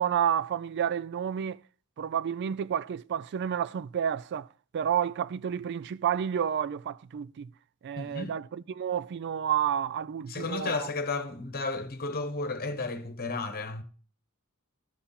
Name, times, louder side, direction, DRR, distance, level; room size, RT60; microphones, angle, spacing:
voice 1, 0.0-1.6 2.0-4.5 4.7-7.5 7.8-10.9, right 9 dB, 55° right, 0.3 m, -30 dB
voice 2, 8.0-8.3 10.3-13.8, left 3 dB, 45° left, 1.1 m, -33 dB
12.0 x 5.8 x 4.1 m
head